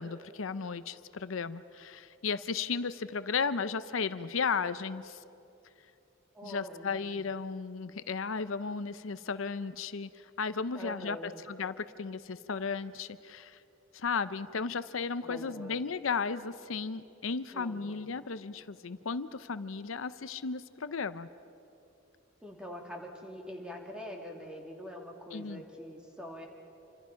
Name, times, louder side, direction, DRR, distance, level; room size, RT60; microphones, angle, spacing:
voice 1, 0.0-5.2 6.4-13.6 13.9-21.3 25.3-25.6, left 5 dB, 80° left, 13 dB, 0.6 m, -35 dB
voice 2, 6.3-7.3 10.7-11.4 15.2-15.8 17.5-18.1 22.4-26.5, left 1 dB, 5° right, 0 dB, 2.6 m, -44 dB
28.0 x 25.0 x 5.8 m, 2.8 s
head